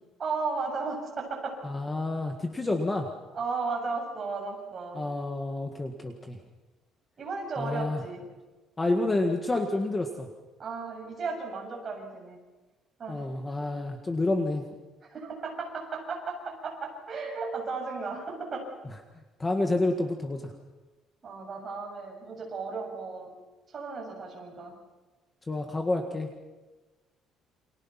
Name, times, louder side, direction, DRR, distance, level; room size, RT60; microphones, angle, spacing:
voice 1, 0.2-1.6 3.3-5.0 7.2-8.2 10.6-12.4 13.0-13.3 15.1-18.7 21.2-23.3 23.7-24.7, right 4 dB, 30° right, 0 dB, 7.4 m, -35 dB
voice 2, 1.6-3.1 4.9-6.4 7.6-8.0 8.8-10.3 13.1-14.6 19.4-20.5 25.5-26.3, left 2 dB, 15° left, 4 dB, 1.7 m, -29 dB
29.0 x 27.5 x 5.9 m, 1.2 s
cardioid pair, 165°, 0 cm